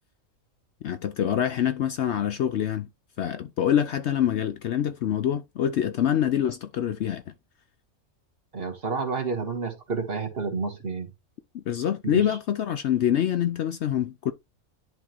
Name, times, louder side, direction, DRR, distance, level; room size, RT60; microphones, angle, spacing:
voice 1, 0.8-2.9 3.2-7.2 11.5-14.3, left 10 dB, 65° left, 0.8 m, -25 dB
voice 2, 8.5-11.1 12.0-12.2, right 4 dB, 45° right, 1.8 m, -30 dB
11.0 x 3.7 x 3.0 m
omnidirectional pair, 1.4 m